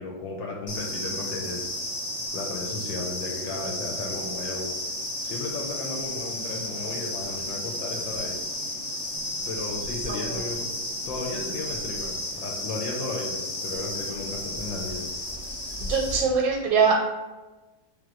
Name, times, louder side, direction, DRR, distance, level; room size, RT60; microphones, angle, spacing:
voice 1, 0.0-1.7 2.3-4.7 5.2-8.4 9.4-10.7 11.0-15.1, left 3 dB, 75° left, 0 dB, 1.3 m, -34 dB
sound 1, 0.7-16.2, left 1 dB, 40° left, 0.7 m, -33 dB
voice 2, 15.8-16.9, right 5 dB, 85° right, -1 dB, 1.4 m, -22 dB
3.5 x 3.0 x 3.7 m, 1.2 s
omnidirectional pair, 2.1 m